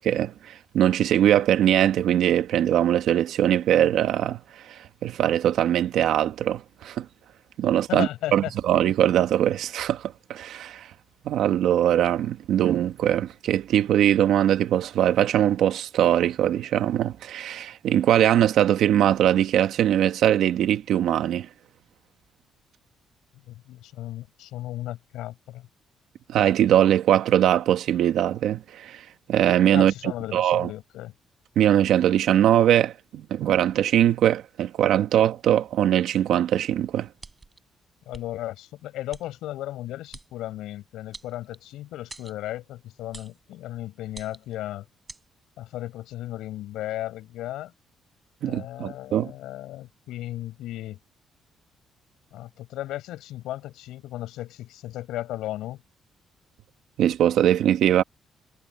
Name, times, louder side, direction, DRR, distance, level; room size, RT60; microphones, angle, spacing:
voice 1, 0.0-4.4 4.7-7.0 7.6-10.9 11.2-21.5 26.3-30.7 31.5-37.1 48.4-49.3 57.0-58.0, right 11 dB, 80° right, 1.5 m, -21 dB
voice 2, 7.9-8.5 23.5-25.7 29.7-31.1 38.1-44.9 45.6-47.7 48.4-51.0 52.3-55.8, left 14 dB, 90° left, 7.0 m, -35 dB
sound 1, 37.2-37.6 38.1-38.3 39.1-39.2 40.1-40.3 41.1-41.7 42.1-42.4 43.1-43.4 44.1-44.6 45.1-45.2, right 3 dB, 25° right, 6.3 m, -44 dB
cardioid pair, 90°, 0 cm